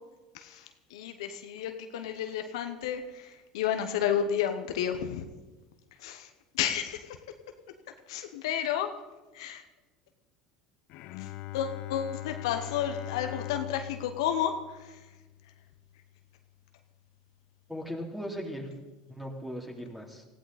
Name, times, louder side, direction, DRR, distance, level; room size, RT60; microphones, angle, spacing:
voice 1, 0.3-5.2 6.0-6.3 6.5-7.2 8.1-8.9 9.3-9.6 11.2-15.0, left 9 dB, 80° left, 7 dB, 1.0 m, -32 dB
Bowed string instrument, 10.9-16.2, left 14 dB, 60° left, 0.7 m, -41 dB
voice 2, 17.7-18.7 19.1-20.2, equal, ahead, 0 dB, 3.5 m, -38 dB
18.0 x 15.5 x 4.2 m, 1.2 s
hypercardioid pair, 85°, 3 cm